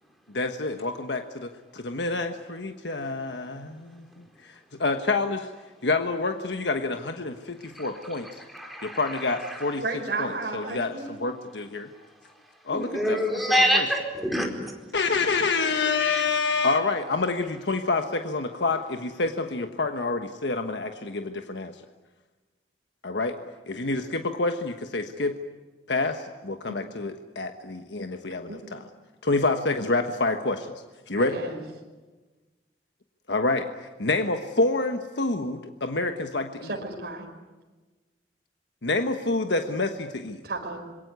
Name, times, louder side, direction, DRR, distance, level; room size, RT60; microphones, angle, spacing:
voice 1, 0.3-4.1 4.7-5.5 5.8-8.3 8.8-9.8 10.2-11.9 12.7-13.9 14.9-21.7 23.0-23.4 23.6-25.4 25.9-28.8 29.2-30.7 31.1-31.4 33.3-33.7 34.0-36.7 38.8-40.4, left 3 dB, 85° left, 6 dB, 1.3 m, -27 dB
voice 2, 8.5-9.7 12.7-14.7 16.0-16.3, equal, ahead, 1 dB, 4.5 m, -26 dB
voice 3, 9.8-11.1 26.7-26.8 28.5-28.6 31.2-31.6 36.6-37.2 40.4-40.8, right 3 dB, 60° right, 1 dB, 5.0 m, -33 dB
26.5 x 22.5 x 9.5 m, 1.2 s
head